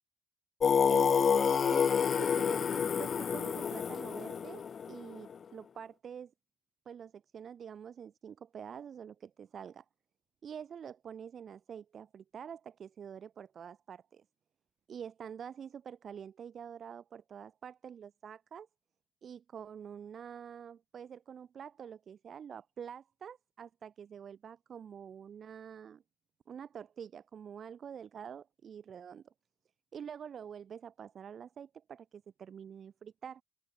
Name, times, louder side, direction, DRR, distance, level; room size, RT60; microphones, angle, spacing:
Singing, 0.6-5.3, left 7 dB, 50° left, 0.4 m, -28 dB
voice 1, 0.9-6.3 6.9-9.9 10.4-14.2 14.9-18.7 19.2-26.0 26.5-29.3 29.9-33.4, right 8 dB, 55° right, 2.0 m, -46 dB
open air
cardioid pair, 90°, 0 cm